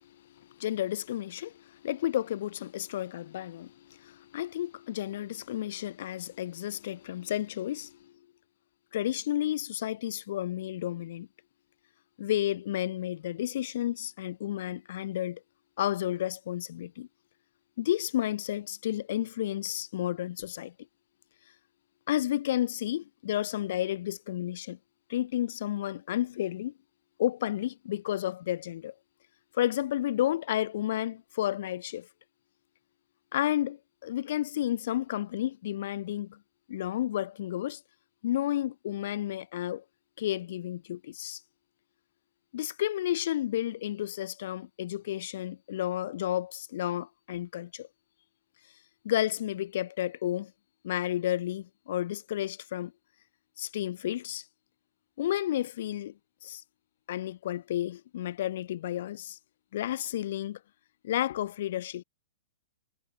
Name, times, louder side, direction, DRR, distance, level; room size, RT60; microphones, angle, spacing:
voice 1, 0.4-8.0 8.9-11.3 12.2-15.4 15.8-17.1 17.8-20.7 22.1-24.8 25.1-26.7 27.2-28.9 29.5-32.1 33.3-36.4 36.7-37.8 38.2-39.8 40.2-41.4 42.5-47.9 49.0-50.5 50.8-52.9 53.6-54.4 55.2-56.1 56.4-56.6 57.1-59.4 59.7-60.6 61.0-62.0, left 12 dB, 60° left, 2.0 m, -31 dB
hypercardioid pair, 125°, 0 cm